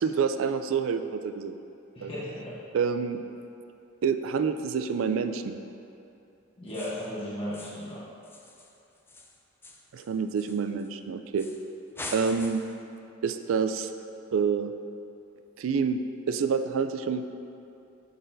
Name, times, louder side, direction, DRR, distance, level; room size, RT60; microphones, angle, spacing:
voice 1, 0.0-1.5 2.0-2.1 2.7-3.2 4.0-5.6 9.9-11.5 12.1-12.6 13.2-13.9 14.3-14.7 15.6-17.3, right 6 dB, 70° right, 9 dB, 0.3 m, -27 dB
voice 2, 1.9-2.6 6.6-8.0, left 1 dB, 25° left, -10 dB, 1.0 m, -35 dB
sound 1, 6.7-7.1 7.5-7.9 8.2-10.9 11.4-11.7 12.0-12.8, left 2 dB, 10° left, 0.3 m, -43 dB
11.5 x 4.0 x 2.6 m, 2.7 s
head